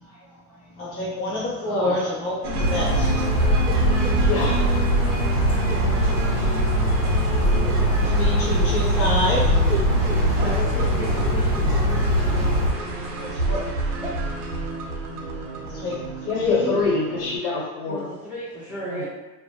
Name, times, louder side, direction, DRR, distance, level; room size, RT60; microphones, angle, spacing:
voice 1, 0.0-0.7 8.0-8.4 10.4-13.0 14.0-14.1 17.8-19.0, right 1 dB, 5° right, -10 dB, 0.5 m, -35 dB
voice 2, 0.8-3.1 8.1-9.5 13.2-13.7 15.6-16.0 16.3-16.7, left 1 dB, 30° left, -7 dB, 0.7 m, -27 dB
voice 3, 1.6-2.0 4.2-4.6 16.2-18.0 18.9-19.0, left 3 dB, 60° left, -5 dB, 1.2 m, -26 dB
sound 1, 2.4-17.4, right 2 dB, 85° right, 0.6 m, -27 dB
Bird vocalization bird call bird song, 2.6-12.7, equal, 80° left, 0.8 m, -22 dB
2.1 x 2.0 x 2.8 m, 1.2 s
hypercardioid pair, 100°, 44 cm